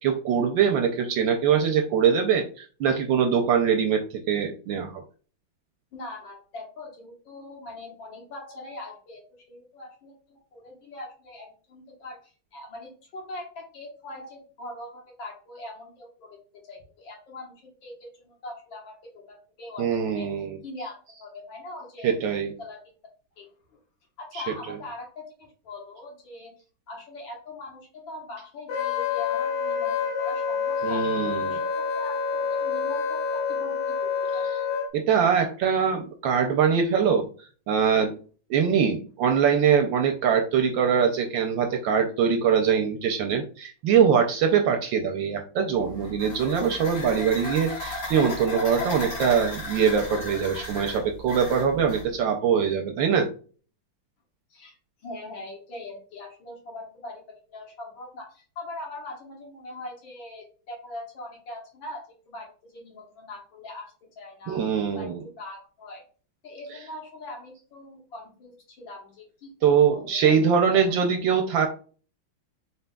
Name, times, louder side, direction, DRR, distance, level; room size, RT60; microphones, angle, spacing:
voice 1, 0.0-5.0 19.8-20.6 22.0-22.5 24.3-24.8 30.8-31.6 34.9-37.3 37.7-38.2 38.5-53.3 64.5-65.2 69.6-71.7, right 7 dB, 75° right, 5 dB, 1.1 m, -23 dB
voice 2, 5.9-20.3 20.6-22.1 22.6-22.8 23.4-23.8 24.2-26.5 26.9-31.1 31.4-34.4 54.5-54.8 55.0-66.0 66.4-70.5 70.7-70.8, left 2 dB, 65° left, 0 dB, 1.9 m, -42 dB
Wind instrument woodwind instrument, 28.7-34.9, left 6 dB, 80° left, 2.0 m, -27 dB
sound 1, 45.8-52.1, left 2 dB, 45° left, 1.8 m, -35 dB
4.2 x 4.0 x 2.2 m, 0.40 s
omnidirectional pair, 2.4 m